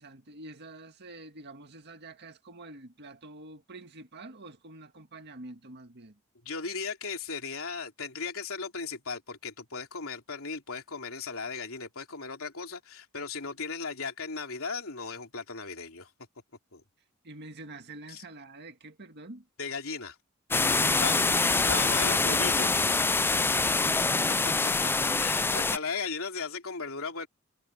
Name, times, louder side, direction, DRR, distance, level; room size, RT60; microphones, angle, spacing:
voice 1, 0.0-6.2 17.2-19.5 20.6-22.4 23.4-24.1, right 2 dB, 50° right, 1.9 m, -47 dB
voice 2, 6.4-16.1 16.7-16.8 18.1-18.2 19.6-20.2 21.0-21.2 21.7-22.7 24.4-27.3, left 5 dB, 70° left, 3.4 m, -36 dB
sound 1, 20.5-25.8, left 3 dB, 10° left, 0.4 m, -25 dB
head